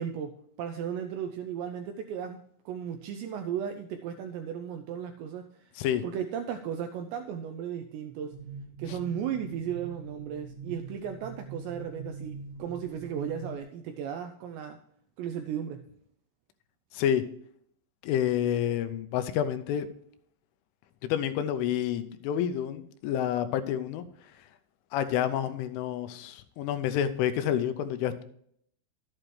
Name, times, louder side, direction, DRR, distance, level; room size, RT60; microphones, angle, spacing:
voice 1, 0.0-5.7 6.0-8.4 8.8-14.8 15.2-15.8, right 8 dB, 85° right, 6 dB, 2.5 m, -35 dB
sound 1, 8.3-13.6, right 4 dB, 60° right, 1.4 m, -43 dB
voice 2, 16.9-17.2 18.0-19.9 21.0-24.0 24.9-28.2, left 10 dB, 85° left, 10 dB, 3.2 m, -29 dB
12.0 x 8.9 x 3.2 m, 0.67 s
omnidirectional pair, 5.6 m